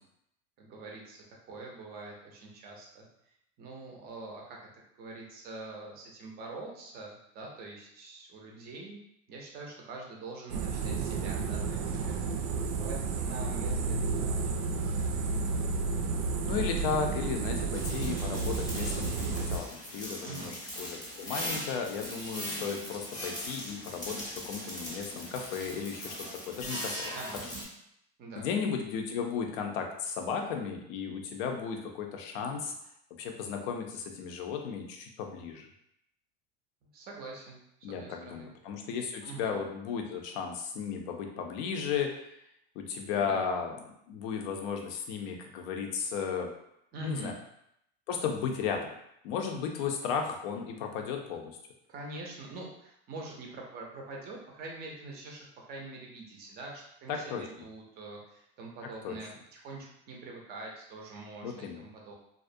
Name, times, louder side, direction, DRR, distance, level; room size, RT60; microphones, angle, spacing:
voice 1, 0.6-3.1 3.6-4.7 5.0-9.0 9.3-12.2 12.8-15.2 20.2-20.5 27.1-27.4 28.2-28.5 36.9-38.5 39.2-39.6 43.2-43.4 46.9-47.4 51.9-62.1, right 2 dB, 30° right, -1 dB, 0.5 m, -44 dB
sound 1, 10.5-19.6, right 4 dB, 80° right, 0.5 m, -31 dB
voice 2, 16.4-27.2 28.4-32.7 33.2-35.7 37.8-42.3 42.8-43.8 44.1-46.5 47.0-47.3 48.1-48.9 49.2-51.6 57.1-57.4 59.0-59.2 61.4-61.8, left 6 dB, 60° left, 4 dB, 0.5 m, -35 dB
sound 2, 17.7-27.6, equal, 10° left, 0.6 m, -40 dB
2.4 x 2.0 x 2.6 m, 0.76 s
supercardioid pair, 145°, 33 cm